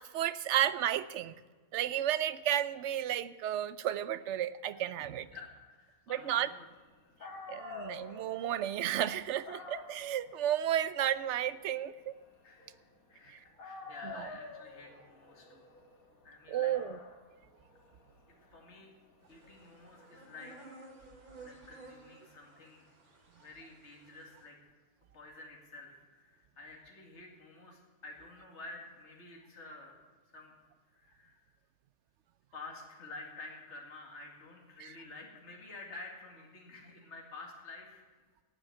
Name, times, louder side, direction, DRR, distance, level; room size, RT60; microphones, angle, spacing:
voice 1, 0.1-1.3 1.7-5.3 6.1-6.5 7.5-12.1 14.0-14.3 16.5-17.0 34.8-34.9, right 11 dB, 60° right, 15 dB, 0.8 m, -32 dB
voice 2, 5.3-6.7 12.4-12.8 13.1-13.4 13.6-15.6 16.2-16.7 18.5-18.9 19.3-20.6 21.4-22.9 23.4-24.6 25.1-30.0 30.3-30.5 30.9-31.4 32.5-38.0, left 3 dB, 50° left, 0 dB, 2.5 m, -50 dB
Dog, 6.9-7.0 7.2-13.2 13.6-20.4, left 4 dB, 70° left, 2.2 m, -50 dB
sound 1, 19.2-24.5, right 2 dB, 85° right, 2.8 m, -55 dB
18.0 x 7.2 x 9.0 m, 1.4 s
omnidirectional pair, 1.5 m